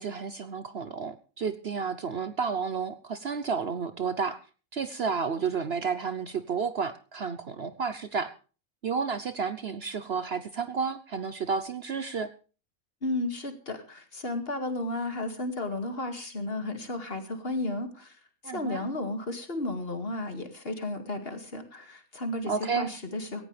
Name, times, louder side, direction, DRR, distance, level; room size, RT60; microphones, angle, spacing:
voice 1, 0.0-4.4 4.7-8.3 8.8-12.3 18.4-18.8 22.5-22.9, right 5 dB, 50° right, 13 dB, 0.9 m, -31 dB
voice 2, 13.0-18.2 18.4-23.4, left 2 dB, 45° left, 7 dB, 2.5 m, -33 dB
18.0 x 15.0 x 3.4 m, 0.37 s
omnidirectional pair, 1.5 m